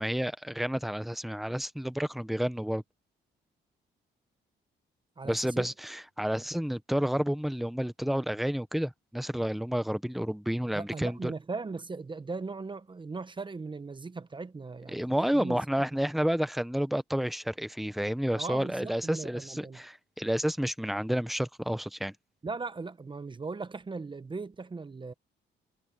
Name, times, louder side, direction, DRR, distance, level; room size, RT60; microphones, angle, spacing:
voice 1, 0.0-2.8 5.2-11.3 14.9-22.1, equal, ahead, 0.9 m, -30 dB
voice 2, 5.2-5.7 10.7-15.6 18.3-19.8 22.4-25.1, right 4 dB, 25° right, 0.9 m, -38 dB
cardioid pair, 90°, 20 cm